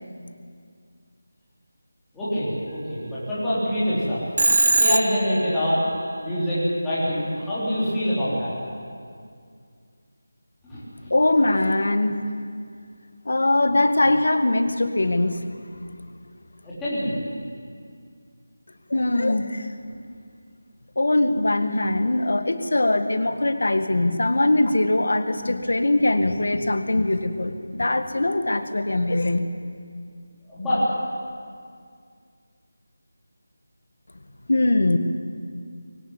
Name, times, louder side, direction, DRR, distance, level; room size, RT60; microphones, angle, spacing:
voice 1, 2.1-4.2 4.8-5.8 6.2-8.5 10.6-11.1 16.6-17.1 30.5-30.8, equal, 5° left, -13 dB, 4.2 m, -25 dB
Telephone, 4.4-5.5, right 2 dB, 65° right, 1.1 m, -20 dB
voice 2, 11.1-12.2 13.3-15.8 18.9-19.7 21.0-29.4 34.5-35.0, left 2 dB, 65° left, 8 dB, 1.8 m, -21 dB
22.5 x 17.5 x 8.4 m, 2.2 s
figure-of-eight pair, 180°, 0 cm